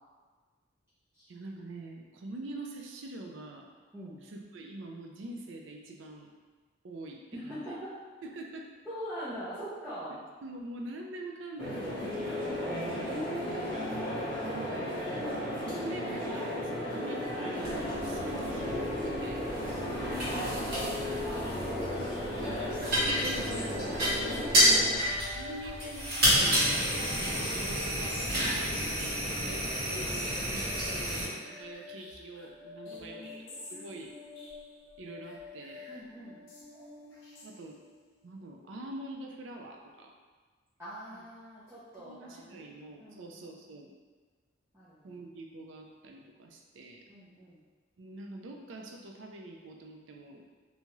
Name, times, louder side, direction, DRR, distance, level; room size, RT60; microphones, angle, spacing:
voice 1, 1.3-3.7 4.3-6.3 6.8-7.8 8.2-8.7 10.4-12.9 14.4-15.0 15.6-19.5 23.0-24.0 24.5-26.8 27.2-28.6 29.4-33.3 33.7-34.1 35.0-35.9 37.4-37.8 38.2-40.1 41.1-41.2 42.1-43.9 45.0-47.1 48.0-50.4, right 2 dB, 75° right, 1 dB, 0.4 m, -45 dB
voice 2, 7.3-8.0 8.9-10.2 13.0-14.0 20.0-22.1 24.3-25.1 28.9-29.4 32.9-33.7 35.8-36.4 40.8-42.7 43.0-43.5 44.7-45.1 47.1-47.6, equal, 15° right, -12 dB, 0.5 m, -43 dB
sound 1, 11.6-25.0, equal, 30° left, 0.8 m, -34 dB
sound 2, 17.6-31.3, equal, 55° right, 1.3 m, -30 dB
sound 3, 21.6-38.0, left 2 dB, 75° left, 0.6 m, -47 dB
2.8 x 2.3 x 3.0 m, 1.4 s
head